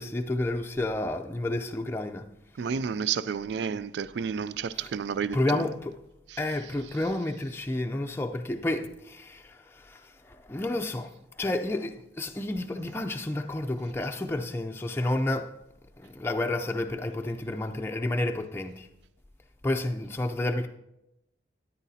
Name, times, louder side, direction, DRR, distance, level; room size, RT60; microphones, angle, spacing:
voice 1, 0.0-2.3 4.7-4.9 5.3-6.0 6.4-11.1 11.4-15.6 16.0-18.9 19.6-20.7, left 1 dB, 15° left, 0.4 m, -30 dB
voice 2, 2.6-5.7 6.3-6.4, right 6 dB, 75° right, 0.3 m, -31 dB
13.0 x 10.0 x 2.8 m
head